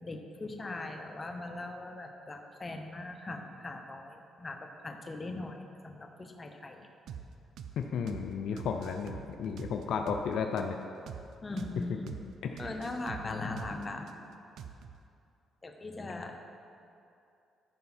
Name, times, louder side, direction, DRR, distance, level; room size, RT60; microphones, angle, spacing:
voice 1, 0.0-6.9 11.4-12.2 12.6-14.3 15.6-16.3, left 2 dB, 25° left, 4 dB, 1.0 m, -40 dB
sound 1, 7.1-7.3 7.6-7.8 8.1-8.3 8.6-10.3 10.6-10.7 11.1-11.3 11.6-11.8 12.1-12.3 12.6-14.1 14.6-15.0, right 8 dB, 75° right, 0.5 m, -44 dB
voice 2, 7.8-10.8 12.1-12.2 12.4-12.7 13.2-13.7, left 6 dB, 75° left, 5 dB, 0.5 m, -34 dB
14.0 x 5.5 x 4.3 m, 2.6 s
cardioid pair, 90°, 0 cm